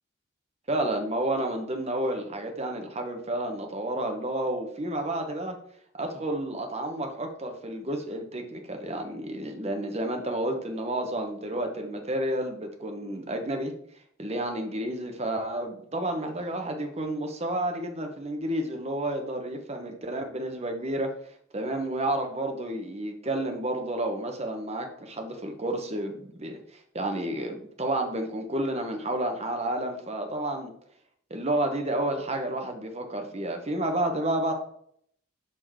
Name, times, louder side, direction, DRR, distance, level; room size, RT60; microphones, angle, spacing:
voice 1, 0.7-5.6 5.9-13.7 14.2-21.1 21.5-30.7 31.3-34.5, right 1 dB, 30° right, 4 dB, 1.0 m, -30 dB
5.9 x 4.5 x 4.6 m, 0.66 s
head